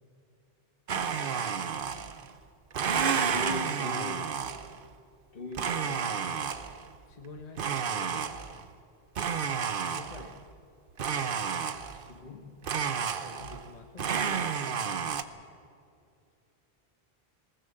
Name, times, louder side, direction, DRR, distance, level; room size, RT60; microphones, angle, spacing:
voice 1, 0.9-2.1 7.1-8.6 9.8-10.4 13.0-15.1, left 3 dB, 40° left, 4 dB, 1.3 m, -49 dB
Domestic sounds home sounds, 0.9-2.3 2.7-4.8 5.5-6.9 7.6-8.7 9.2-10.4 11.0-12.1 12.6-13.7 14.0-15.2, right 7 dB, 60° right, 1.0 m, -31 dB
voice 2, 3.2-4.3 5.3-6.2 11.9-12.5, left 2 dB, 60° left, 6 dB, 1.8 m, -39 dB
20.5 x 17.5 x 7.7 m, 2.5 s
omnidirectional pair, 1.1 m